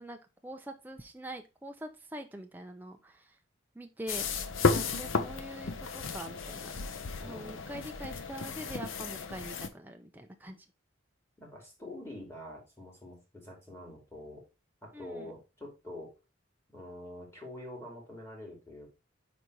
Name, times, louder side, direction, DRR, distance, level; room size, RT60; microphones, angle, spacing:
voice 1, 0.0-3.4 3.7-4.3 4.7-6.8 7.2-10.7 14.9-15.3, right 1 dB, 10° right, 4 dB, 0.7 m, -44 dB
sound 1, 4.1-9.7, left 4 dB, 90° left, 0.7 m, -33 dB
voice 2, 4.6-4.9 7.2-7.8 11.4-14.4 14.8-16.1 16.7-18.9, left 1 dB, 15° left, -1 dB, 2.7 m, -46 dB
5.2 x 4.2 x 4.6 m, 0.28 s
head